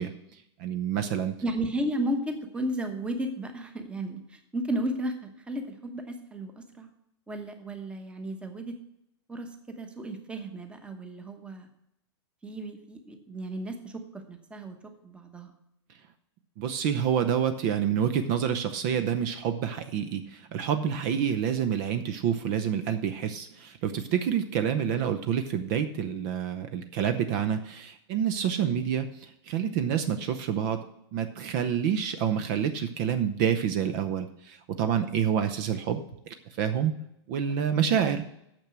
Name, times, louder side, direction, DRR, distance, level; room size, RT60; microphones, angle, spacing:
voice 1, 0.0-1.4 16.6-30.8 31.1-36.9 37.3-38.2, right 8 dB, 45° right, 9 dB, 0.7 m, -28 dB
voice 2, 1.4-6.9 7.3-8.8 9.3-11.7 12.4-14.8 15.0-15.5 24.9-25.1 38.0-38.2, right 1 dB, 5° right, 6 dB, 1.0 m, -34 dB
9.0 x 6.8 x 6.0 m, 0.80 s
supercardioid pair, 150°, 15 cm